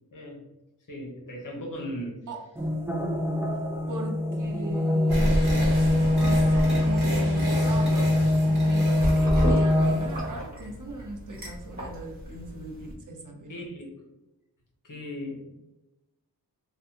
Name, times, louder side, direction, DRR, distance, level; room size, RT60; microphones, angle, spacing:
voice 1, 0.1-0.4 0.9-2.2 13.5-14.1 14.8-15.5, equal, 55° left, -1 dB, 1.0 m, -37 dB
sound 1, 2.6-10.3, left 1 dB, 5° right, 0.3 m, -24 dB
voice 2, 3.9-5.4 6.2-13.6, right 1 dB, 55° right, 1 dB, 0.7 m, -39 dB
sound 2, 5.1-10.3, right 1 dB, 70° right, 1.2 m, -30 dB
sound 3, 8.9-12.9, equal, 20° right, 1.3 m, -31 dB
3.4 x 2.3 x 2.8 m, 0.97 s
wide cardioid pair, 70°, 39 cm